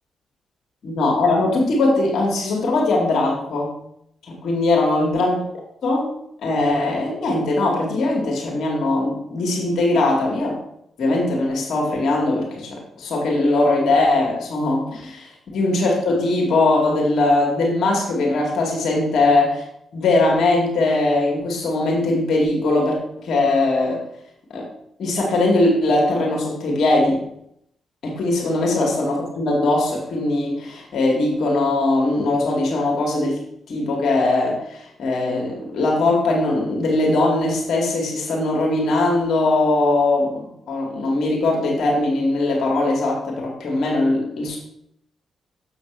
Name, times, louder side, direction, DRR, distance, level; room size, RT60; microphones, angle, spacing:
voice 1, 0.8-3.7 4.3-5.4 5.8-6.1 6.4-10.6 11.0-19.6 19.9-24.0 24.5-24.6 25.0-27.2 28.0-33.4 33.7-44.6, left 2 dB, 65° left, -1 dB, 2.1 m, -20 dB
7.1 x 6.4 x 3.3 m, 0.74 s
hypercardioid pair, 40°, 0 cm